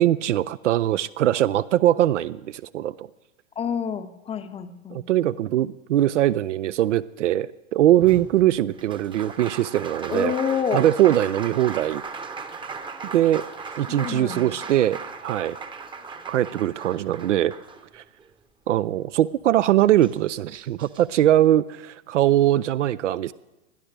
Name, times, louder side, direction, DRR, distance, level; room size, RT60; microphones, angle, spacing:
voice 1, 0.0-3.1 4.9-10.3 10.7-12.0 13.1-13.4 13.8-15.6 16.3-17.5 17.9-18.0 18.7-23.3, right 13 dB, 70° right, 16 dB, 0.5 m, -21 dB
voice 2, 3.6-5.0 10.1-10.9 13.9-14.5, left 7 dB, 15° left, 11 dB, 0.7 m, -28 dB
Applause, 8.0-18.3 19.6-19.7 20.0-21.0, right 5 dB, 10° right, 0.9 m, -37 dB
21.0 x 12.5 x 3.3 m, 0.96 s
hypercardioid pair, 105°, 38 cm